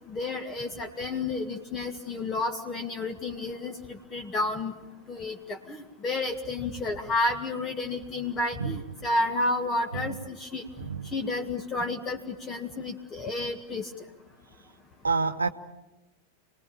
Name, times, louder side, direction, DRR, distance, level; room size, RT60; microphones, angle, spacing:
voice 1, 0.1-4.7 5.1-10.6 11.1-13.9, left 2 dB, 25° left, 4 dB, 1.8 m, -31 dB
voice 2, 10.8-11.1 15.0-15.5, right 4 dB, 75° right, 9 dB, 0.9 m, -28 dB
28.0 x 20.0 x 8.7 m, 1.0 s
figure-of-eight pair, 90°, 0 cm